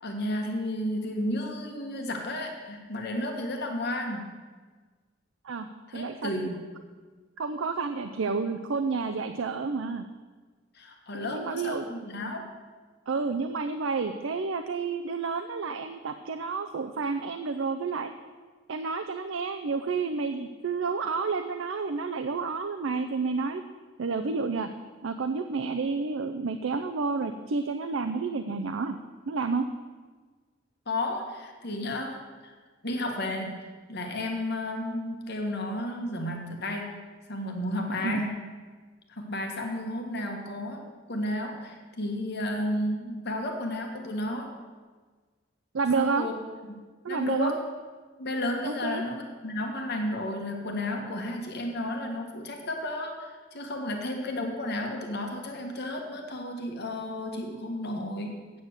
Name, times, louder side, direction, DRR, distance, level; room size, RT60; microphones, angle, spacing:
voice 1, 0.0-4.3 5.9-6.6 10.7-12.5 30.8-32.5 32.8-37.0 37.3-38.4 39.1-44.6 45.9-46.3 46.6-46.8 47.1-47.6 48.2-58.6, left 1 dB, 55° left, 2 dB, 1.6 m, -32 dB
voice 2, 5.9-6.3 7.4-10.1 11.1-11.9 13.1-18.1 18.7-23.6 24.0-24.7 25.0-29.0 29.3-29.7 38.0-38.2 45.7-46.3 47.0-47.5 48.7-49.0, right 4 dB, 80° right, 7 dB, 0.5 m, -30 dB
8.6 x 7.3 x 7.9 m, 1.4 s
head